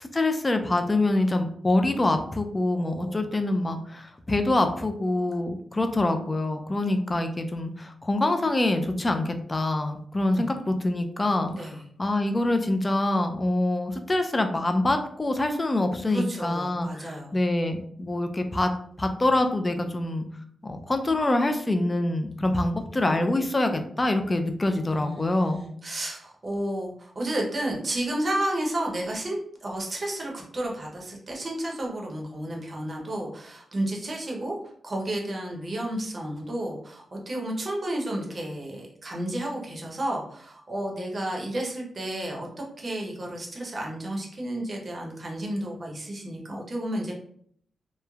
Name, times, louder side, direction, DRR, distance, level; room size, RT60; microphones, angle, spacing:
voice 1, 0.1-11.7 12.0-18.7 19.0-20.3 20.6-25.6, left 2 dB, 20° left, 6 dB, 0.3 m, -25 dB
voice 2, 2.7-3.3 10.3-10.5 11.5-11.8 16.1-17.4 24.9-34.6 34.8-47.1, right 1 dB, 35° right, -1 dB, 0.7 m, -32 dB
3.0 x 2.0 x 2.3 m, 0.63 s
wide cardioid pair, 115°, 0 cm